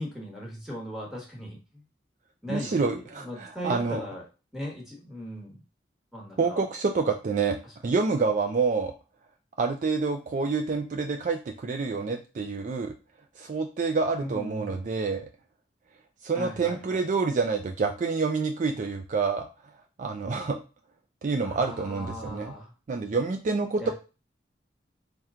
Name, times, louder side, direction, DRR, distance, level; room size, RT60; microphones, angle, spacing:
voice 1, 0.0-1.8 2.4-4.2 4.5-5.6 6.1-6.6 14.2-14.7 16.3-17.0 21.4-22.7 23.8-23.9, equal, ahead, -3 dB, 1.2 m, -38 dB
voice 2, 2.5-4.0 6.4-7.6 7.8-8.9 9.6-13.0 13.4-15.3 16.2-19.5 20.0-20.6 21.2-22.5 22.9-23.9, right 4 dB, 45° right, 5 dB, 0.4 m, -27 dB
4.3 x 2.2 x 3.6 m, 0.31 s
head